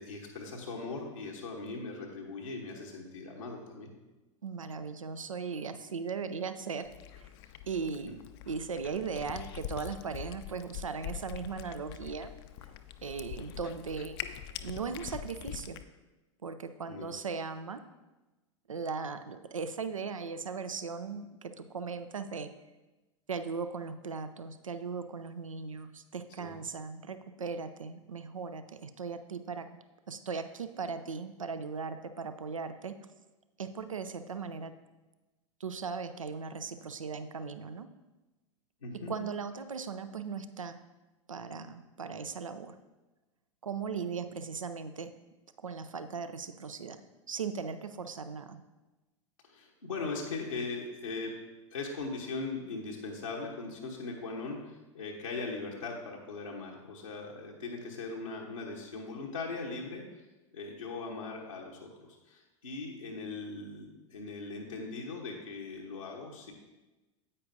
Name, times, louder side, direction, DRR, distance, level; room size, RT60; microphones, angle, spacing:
voice 1, 0.0-3.9 7.3-7.6 16.9-17.2 26.4-26.6 38.8-39.1 49.4-51.3 51.7-60.2 60.5-66.5, left 3 dB, 80° left, -4 dB, 1.1 m, -40 dB
voice 2, 4.4-6.9 7.2-7.3 7.7-8.2 8.5-12.3 13.0-14.2 14.6-15.8 16.4-17.8 18.7-22.5 23.3-29.7 30.1-32.9 33.6-34.7 35.6-37.9 39.1-40.8 41.3-42.8 43.6-45.1 45.6-47.0 47.3-48.6, right 5 dB, 85° right, 10 dB, 0.5 m, -38 dB
Cat, 6.8-15.8, left 11 dB, 50° left, 0.5 m, -44 dB
9.8 x 8.5 x 2.7 m, 1.1 s
figure-of-eight pair, 90°, 17 cm